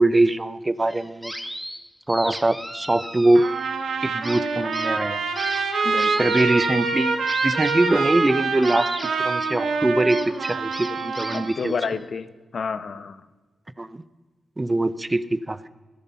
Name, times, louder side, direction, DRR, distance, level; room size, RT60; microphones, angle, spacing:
voice 1, 0.0-1.3 2.1-3.5 4.0-5.2 6.2-7.2 7.4-8.9 9.2-11.7 13.8-14.0 14.6-15.7, right 2 dB, 25° right, 15 dB, 0.8 m, -22 dB
sound 1, 0.9-1.8 2.1-3.9 4.2-12.1, equal, ahead, 1.9 m, -37 dB
Trumpet, 3.3-11.5, right 4 dB, 80° right, 1.6 m, -25 dB
voice 2, 5.8-6.4 11.3-12.3 12.5-13.2, left 5 dB, 65° left, 12 dB, 0.9 m, -29 dB
20.5 x 11.0 x 5.6 m, 1.3 s
supercardioid pair, 45°, 0 cm